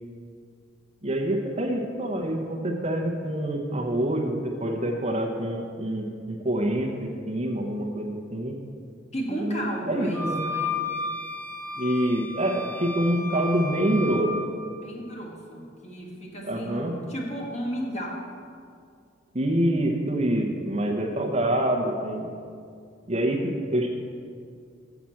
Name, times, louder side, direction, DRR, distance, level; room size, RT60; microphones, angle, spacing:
voice 1, 1.0-8.6 9.3-10.4 11.8-14.3 16.4-16.9 19.3-22.3 23.1-23.9, right 1 dB, 35° right, 1 dB, 0.8 m, -26 dB
voice 2, 9.1-10.8 14.8-18.3, right 1 dB, 35° left, -2 dB, 1.5 m, -34 dB
sound 1, 10.1-14.3, left 3 dB, 10° left, 1.2 m, -33 dB
7.1 x 5.9 x 7.6 m, 2.3 s
head